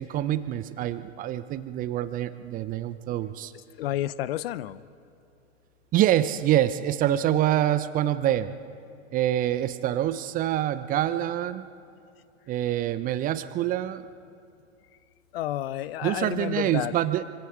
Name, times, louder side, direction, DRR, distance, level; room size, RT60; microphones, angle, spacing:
voice 1, 0.0-3.5 5.9-8.5 9.1-11.7 12.5-14.1 16.0-17.2, right 12 dB, 20° right, 13 dB, 0.6 m, -26 dB
voice 2, 3.8-4.8 15.3-16.9, left 13 dB, 50° left, 17 dB, 0.7 m, -30 dB
25.0 x 25.0 x 5.0 m, 2.5 s
figure-of-eight pair, 100°, 40 cm